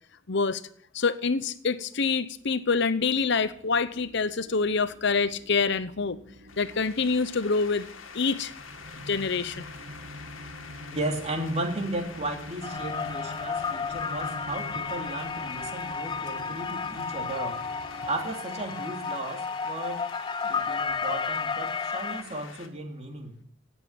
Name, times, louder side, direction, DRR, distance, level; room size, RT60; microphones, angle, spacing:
voice 1, 0.3-0.6 0.9-6.2 6.6-7.9 8.1-8.5 9.1-9.7, left 4 dB, 60° left, 0.8 m, -26 dB
sound 1, 2.0-18.2, equal, 60° right, 1.9 m, -46 dB
sound 2, 6.5-22.7, left 5 dB, 90° left, 2.0 m, -46 dB
voice 2, 10.9-17.6 18.1-20.0 20.4-23.3, right 2 dB, 35° right, 3.3 m, -35 dB
sound 3, 12.6-22.2, left 5 dB, 25° left, 0.5 m, -32 dB
17.5 x 8.2 x 8.9 m
head